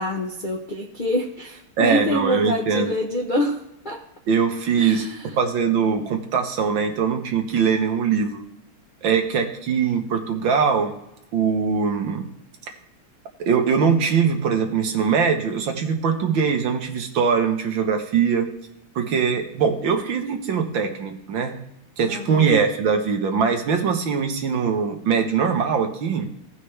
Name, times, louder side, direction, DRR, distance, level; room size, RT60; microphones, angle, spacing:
voice 1, 0.0-4.0 4.8-5.3 22.1-22.6, left 1 dB, 40° left, -2 dB, 0.6 m, -26 dB
voice 2, 1.8-2.9 4.3-5.1 5.4-8.4 9.0-10.9 11.3-12.3 13.4-18.5 19.0-21.6 22.0-26.3, right 6 dB, 65° right, 4 dB, 1.8 m, -22 dB
17.0 x 5.8 x 3.2 m, 0.84 s
omnidirectional pair, 2.3 m